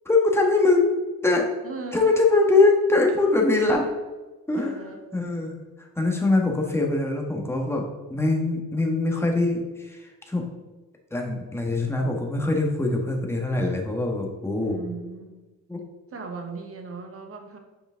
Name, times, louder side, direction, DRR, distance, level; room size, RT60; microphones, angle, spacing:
voice 1, 0.0-0.9 1.2-1.5 1.9-3.9 4.5-4.8 5.1-5.5 6.0-7.8 8.1-10.5 11.1-14.8 15.7-15.8, left 3 dB, 10° left, 1 dB, 1.4 m, -22 dB
voice 2, 1.6-2.1 4.6-5.0 14.6-15.4 16.1-17.6, right 4 dB, 50° right, 4 dB, 1.3 m, -37 dB
6.9 x 5.1 x 3.7 m, 1.2 s
cardioid pair, 90°, 30 cm